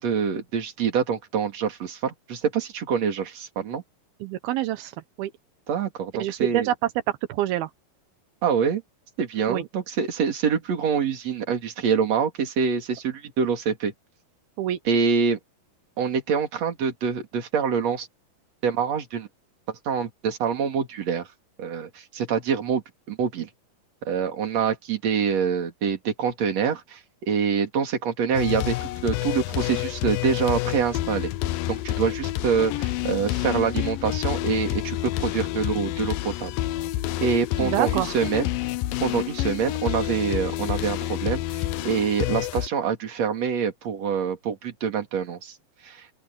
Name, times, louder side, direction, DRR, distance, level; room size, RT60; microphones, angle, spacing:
voice 1, 0.0-3.8 5.7-6.7 8.4-8.8 9.2-13.9 14.9-15.4 16.0-18.1 18.6-19.3 19.9-21.3 21.6-23.5 24.0-31.3 31.7-36.5 37.2-38.5 39.0-45.5 45.8-46.1, right 6 dB, 45° right, 3.6 m, -25 dB
voice 2, 4.2-4.9 5.2-5.3 6.2-6.7 7.1-7.7 9.5-9.7 14.6-14.8 37.6-38.1, right 13 dB, 85° right, 2.9 m, -26 dB
sound 1, 28.3-42.7, left 15 dB, 80° left, 2.3 m, -28 dB
open air
omnidirectional pair, 4.3 m